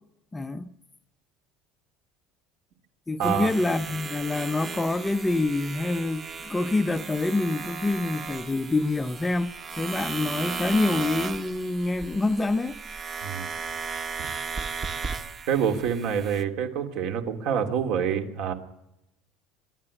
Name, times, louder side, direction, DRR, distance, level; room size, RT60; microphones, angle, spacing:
voice 1, 0.3-0.7 3.1-12.7, left 2 dB, 10° left, 0.7 m, -26 dB
sound 1, 3.2-16.4, right 5 dB, 25° right, 1.4 m, -36 dB
voice 2, 3.2-3.5 13.2-13.5 15.5-18.5, right 8 dB, 60° right, 2.7 m, -26 dB
24.0 x 12.0 x 9.9 m
cardioid pair, 160°, 0 cm